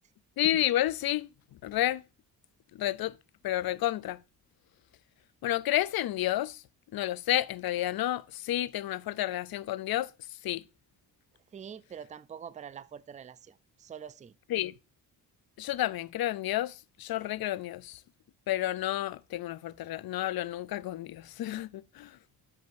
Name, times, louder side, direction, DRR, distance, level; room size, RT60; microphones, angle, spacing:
voice 1, 0.4-1.3 1.6-2.0 2.7-3.2 3.4-4.2 5.4-6.6 6.9-10.1 10.4-10.6 14.5-14.7 15.6-18.0 18.5-22.1, left 14 dB, 55° left, 0.5 m, -30 dB
voice 2, 11.5-14.3, right 8 dB, 20° right, 0.3 m, -45 dB
10.5 x 6.2 x 2.6 m
supercardioid pair, 50°, 46 cm